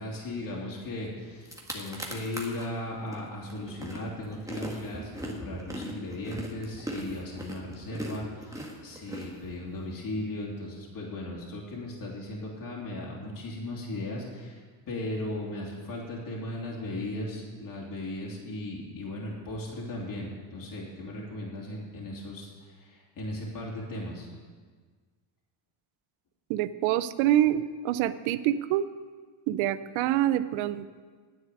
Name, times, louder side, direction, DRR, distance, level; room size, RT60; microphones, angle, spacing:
voice 1, 0.0-24.3, left 1 dB, 40° left, -3 dB, 2.9 m, -37 dB
sound 1, 1.1-1.2 1.4-2.7 3.1-9.9, right 1 dB, 5° right, 1.6 m, -39 dB
voice 2, 26.5-28.9 29.5-31.0, right 12 dB, 70° right, 15 dB, 0.7 m, -26 dB
9.8 x 7.3 x 8.2 m, 1.5 s
cardioid pair, 110°, 49 cm